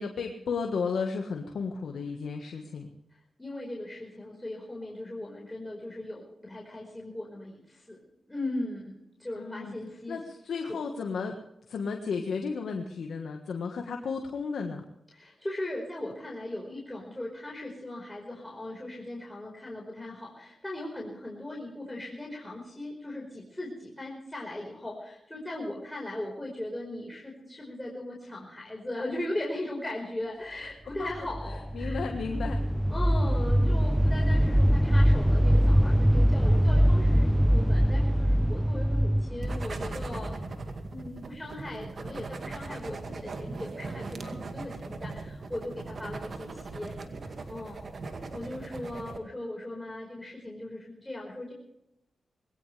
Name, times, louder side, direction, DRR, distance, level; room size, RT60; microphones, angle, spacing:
voice 1, 0.0-2.9 9.4-9.7 10.1-11.4 11.7-14.8 31.0-31.1 31.7-32.6, left 5 dB, 80° left, 3 dB, 1.5 m, -33 dB
voice 2, 3.4-8.0 8.3-10.2 10.7-10.8 15.1-32.3 32.9-40.4 40.9-46.9 47.2-47.9 48.3-51.5, left 1 dB, 15° left, -1 dB, 4.8 m, -38 dB
sound 1, 31.1-40.9, equal, 5° right, 0.5 m, -23 dB
sound 2, 39.4-49.2, right 3 dB, 60° right, 2.1 m, -39 dB
21.0 x 17.0 x 3.4 m, 0.84 s
cardioid pair, 60°, 0 cm